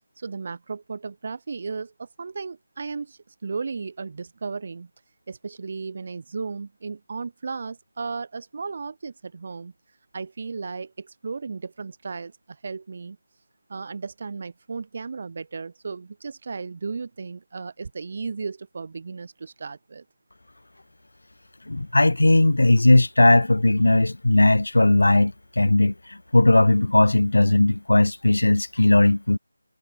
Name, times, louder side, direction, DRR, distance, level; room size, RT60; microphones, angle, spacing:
voice 1, 0.2-4.9 5.3-9.7 10.1-13.2 13.7-20.0, right 4 dB, 35° right, 6.0 m, -35 dB
voice 2, 21.7-29.4, left 2 dB, 80° left, 1.9 m, -18 dB
figure-of-eight pair, 170°, 0 cm